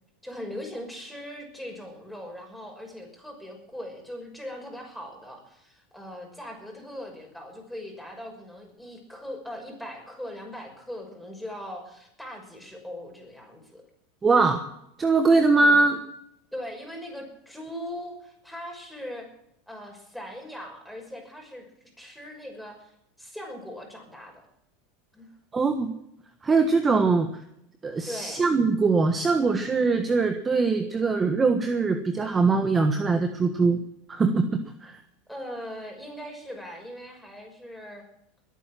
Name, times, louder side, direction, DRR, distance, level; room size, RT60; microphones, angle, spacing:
voice 1, 0.2-13.8 15.6-15.9 16.5-19.3 19.7-22.9 23.2-24.4 25.1-25.3 28.1-28.5 35.3-38.1, equal, ahead, 1 dB, 6.0 m, -40 dB
voice 2, 14.2-14.6 15.0-16.0 25.5-25.9 26.4-27.3 27.8-33.8 34.1-34.4 34.8-35.0, right 4 dB, 20° right, 7 dB, 1.4 m, -22 dB
22.0 x 9.1 x 6.1 m, 0.78 s
supercardioid pair, 115°, 0 cm